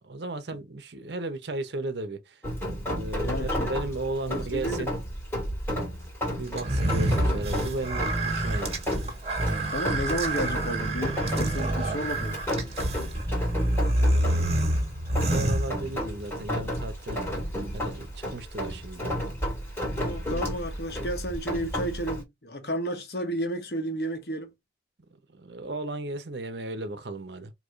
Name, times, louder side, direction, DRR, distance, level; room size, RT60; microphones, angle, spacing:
voice 1, 0.1-2.4 2.8-4.9 6.3-9.0 12.9-13.2 13.9-14.8 15.2-17.2 17.7-19.2 25.3-27.5, right 2 dB, 75° right, 0.9 m, -35 dB
Rain, 2.4-22.2, equal, 15° left, 1.9 m, -32 dB
voice 2, 3.2-3.7 4.3-4.9 9.7-12.4 20.0-24.5, equal, 60° left, 1.2 m, -32 dB
sound 1, 6.6-16.3, right 1 dB, 35° right, 1.7 m, -27 dB
4.8 x 2.9 x 2.5 m
head